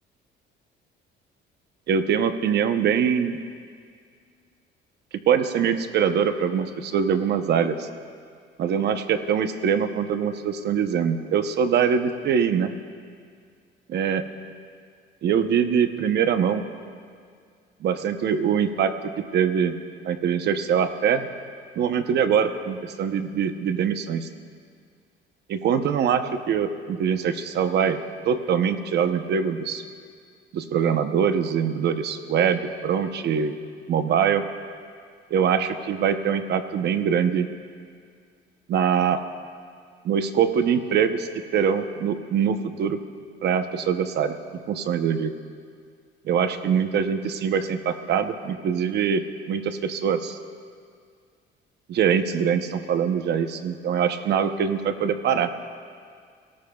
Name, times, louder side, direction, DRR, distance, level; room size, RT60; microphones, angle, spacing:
voice 1, 1.9-3.4 5.3-7.9 8.6-12.7 13.9-14.2 15.2-16.6 17.8-18.9 19.3-19.8 20.0-21.3 21.8-24.3 25.5-28.0 28.3-29.8 30.5-33.5 33.9-34.4 35.3-37.5 38.7-39.2 40.0-43.0 43.4-44.4 44.7-45.3 46.2-50.4 51.9-55.5, right 7 dB, 60° right, 9 dB, 0.8 m, -23 dB
23.5 x 18.0 x 2.3 m, 2.1 s
cardioid pair, 135°, 20 cm